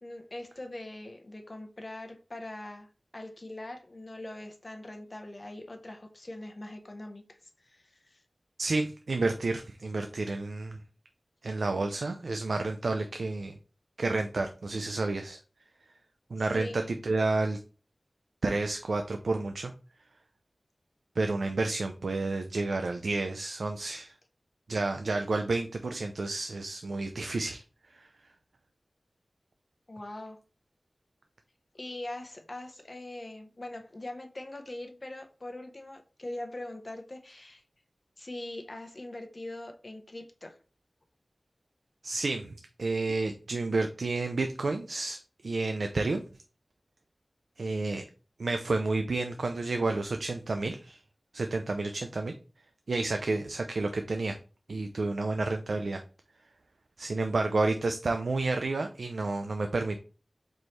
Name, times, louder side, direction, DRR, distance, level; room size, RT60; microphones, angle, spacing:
voice 1, 0.0-2.9 3.1-8.2 16.5-16.9 29.9-30.4 31.7-37.6 38.2-40.6, left 1 dB, 45° left, 0.7 m, -42 dB
voice 2, 8.6-10.8 11.4-13.6 14.0-15.4 16.3-17.6 18.4-19.7 21.2-24.1 24.7-27.6 27.9-28.1 42.0-46.2 47.6-48.0 48.4-51.0 51.3-52.3 52.9-54.4 54.7-56.0 57.0-60.0, right 3 dB, 90° right, 0.3 m, -30 dB
4.3 x 2.9 x 3.2 m
wide cardioid pair, 65°, 0 cm